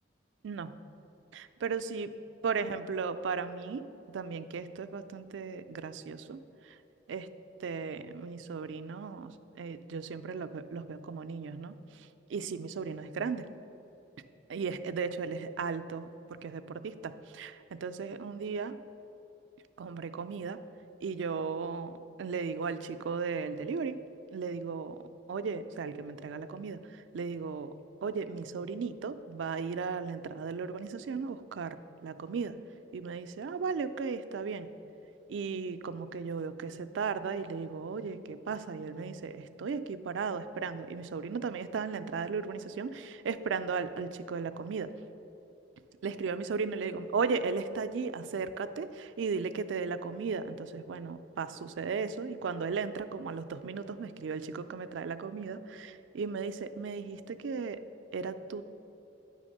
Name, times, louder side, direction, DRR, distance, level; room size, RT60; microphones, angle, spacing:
voice 1, 1.3-2.1 2.4-6.4 6.6-6.8 7.1-7.3 7.6-13.5 14.5-18.8 19.8-20.6 21.0-24.0 24.3-25.0 25.3-27.7 28.0-32.6 32.9-34.7 35.3-44.9 46.0-57.8 58.1-58.6, right 5 dB, 90° right, 11 dB, 0.4 m, -36 dB
9.6 x 3.5 x 6.5 m, 2.9 s
head